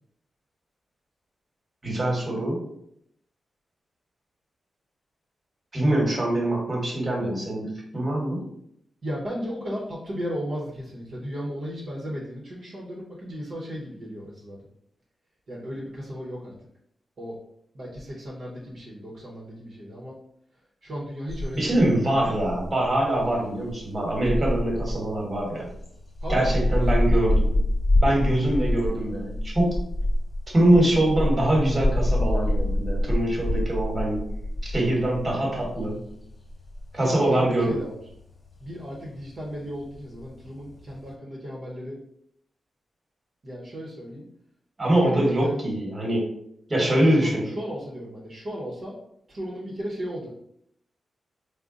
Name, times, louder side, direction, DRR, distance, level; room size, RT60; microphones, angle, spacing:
voice 1, 1.8-2.6 5.7-8.4 21.5-25.7 26.3-27.5 28.0-29.8 30.5-34.2 34.6-36.0 36.9-37.7 44.8-46.3 46.7-47.6, right 1 dB, 35° right, -1 dB, 1.4 m, -23 dB
voice 2, 9.0-14.6 15.5-16.5 17.2-17.4 17.7-20.2 20.8-22.0 26.2-26.8 37.0-38.0 38.6-42.0 43.4-44.2 45.0-45.5 46.7-49.0 49.3-50.3, equal, 60° right, -5 dB, 1.0 m, -35 dB
sound 1, 21.3-41.1, left 1 dB, 35° left, 1.2 m, -27 dB
3.7 x 2.2 x 3.8 m, 0.72 s
cardioid pair, 60°, 0 cm